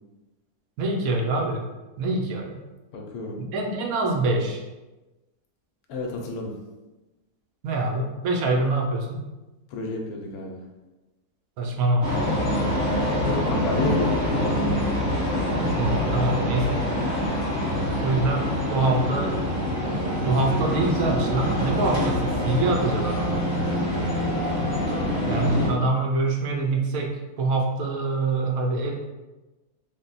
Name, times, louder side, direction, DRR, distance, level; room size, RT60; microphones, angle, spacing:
voice 1, 0.8-1.7 2.0-2.6 3.4-4.6 7.6-9.2 11.6-12.3 15.6-16.8 18.0-19.3 20.2-23.4 25.3-28.9, right 2 dB, 70° right, 1 dB, 1.0 m, -25 dB
voice 2, 2.9-3.4 5.9-6.5 9.7-10.6 12.9-14.2 23.9-24.4, left 2 dB, 70° left, 1 dB, 1.0 m, -31 dB
sound 1, 12.0-25.7, left 1 dB, 25° left, 1.3 m, -25 dB
3.7 x 2.2 x 3.9 m, 1.1 s
omnidirectional pair, 1.7 m